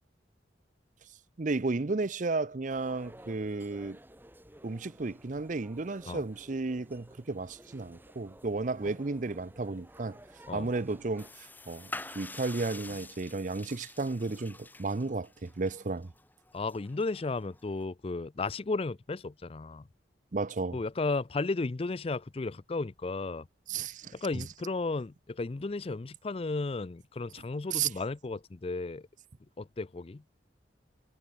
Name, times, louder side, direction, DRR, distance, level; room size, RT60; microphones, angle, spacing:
voice 1, 1.4-4.0 4.6-10.2 10.5-16.1 20.3-20.8 23.7-24.4 27.7-27.9, right 3 dB, 45° right, 0.6 m, -33 dB
sound 1, 2.7-11.3, right 1 dB, 10° right, 4.0 m, -54 dB
sound 2, 11.2-17.8, left 2 dB, 10° left, 3.3 m, -47 dB
voice 2, 16.5-19.9 20.7-23.5 24.1-29.1 29.6-30.2, left 3 dB, 30° left, 0.5 m, -34 dB
head